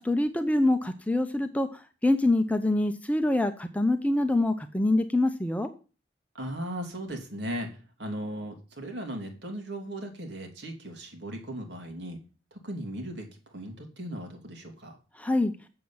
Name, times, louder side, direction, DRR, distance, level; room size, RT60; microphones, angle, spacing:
voice 1, 0.0-5.7 15.1-15.5, left 2 dB, 10° left, 7 dB, 0.7 m, -25 dB
voice 2, 6.3-12.2 12.5-15.0, right 1 dB, 65° right, 3 dB, 2.9 m, -37 dB
7.7 x 7.6 x 7.1 m, 0.35 s
head